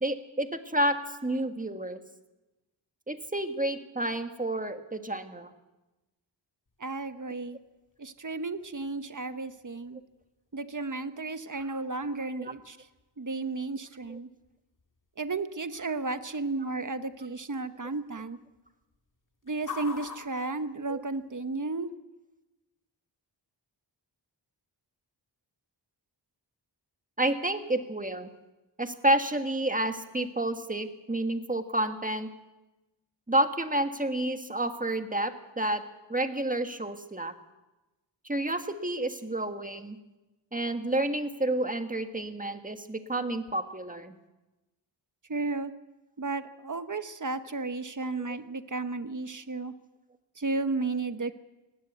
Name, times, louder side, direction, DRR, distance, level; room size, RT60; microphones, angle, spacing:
voice 1, 0.0-2.0 3.1-5.5 12.4-12.5 14.1-14.2 20.9-21.0 27.2-28.3 28.8-32.3 33.3-35.8 36.1-37.3 38.2-40.0 40.5-44.1 48.2-48.4, right 1 dB, 20° right, 7 dB, 1.6 m, -30 dB
sound 1, 6.6-21.5, left 5 dB, 45° left, 1.9 m, -51 dB
voice 2, 6.8-7.6 8.0-10.0 10.5-12.8 13.2-14.3 15.2-18.4 19.5-21.9 45.3-45.7 46.2-49.7 50.4-51.3, right 3 dB, 45° right, 11 dB, 1.1 m, -33 dB
19.5 x 17.0 x 8.2 m, 1.1 s
wide cardioid pair, 80°, 44 cm